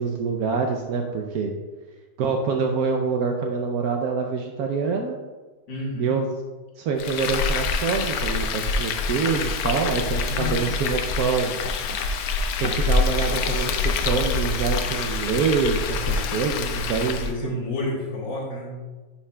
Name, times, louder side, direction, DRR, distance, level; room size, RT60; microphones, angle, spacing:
voice 1, 0.0-1.5 2.2-5.2 6.0-6.3 6.8-11.5 12.6-17.5, right 5 dB, 80° right, 3 dB, 0.8 m, -25 dB
voice 2, 5.7-6.1 10.3-10.7 16.0-16.5 17.2-18.8, left 1 dB, 70° left, -3 dB, 2.0 m, -30 dB
Frying (food), 7.0-17.4, left 4 dB, 90° left, 0.8 m, -26 dB
11.0 x 5.7 x 2.2 m, 1.3 s
omnidirectional pair, 2.2 m